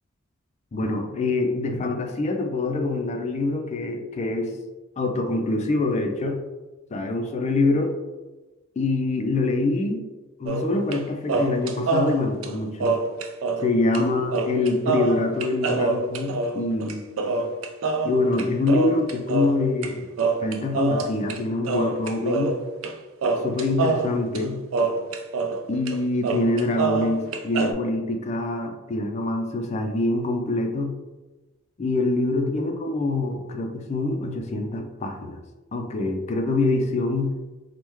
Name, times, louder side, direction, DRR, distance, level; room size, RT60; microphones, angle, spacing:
voice 1, 0.7-4.6 5.0-6.4 6.9-7.9 8.8-10.1 10.4-13.0 13.6-17.0 18.0-20.1 20.4-22.6 23.4-24.6 25.7-30.9 31.8-35.4 35.7-37.3, left 2 dB, 30° left, 4 dB, 0.3 m, -25 dB
sound 1, 10.5-11.0 11.3-13.7 13.9-14.0 14.3-19.9 20.2-21.4 21.6-22.9 23.2-25.6 25.9-26.0 26.2-27.7, right 3 dB, 70° right, 0.3 m, -25 dB
3.3 x 2.1 x 3.0 m, 1.2 s
head